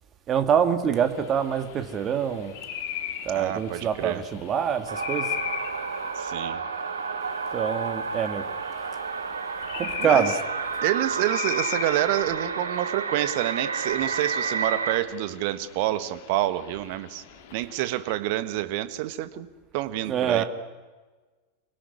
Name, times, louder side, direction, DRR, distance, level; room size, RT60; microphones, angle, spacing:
voice 1, 0.3-2.5 3.3-5.3 7.5-8.4 9.8-10.3 20.1-20.4, right 8 dB, 30° right, 8 dB, 2.1 m, -25 dB
sound 1, 0.9-18.1, left 10 dB, 50° left, 2.5 m, -39 dB
voice 2, 3.3-4.2 6.1-6.6 10.0-10.3 10.8-17.2 17.5-19.5 19.7-20.4, right 14 dB, 45° right, 13 dB, 1.4 m, -28 dB
sound 2, 4.9-15.0, right 5 dB, 70° right, 1.5 m, -31 dB
25.5 x 17.5 x 9.8 m, 1.3 s
figure-of-eight pair, 90°, 0 cm